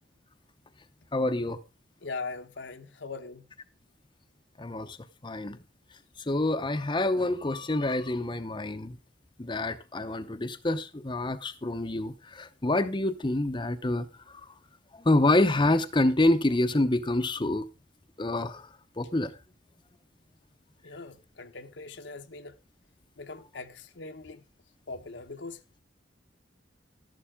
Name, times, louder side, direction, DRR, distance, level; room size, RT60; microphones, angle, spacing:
voice 1, 1.1-1.6 4.6-5.0 5.2-5.6 6.2-9.0 9.4-14.5 14.9-17.7 18.2-19.3, left 2 dB, 25° left, 0.7 m, -27 dB
voice 2, 2.0-3.5 20.8-22.5 23.2-24.4 24.9-25.6, left 3 dB, 70° left, 0.9 m, -41 dB
12.5 x 11.5 x 3.6 m
head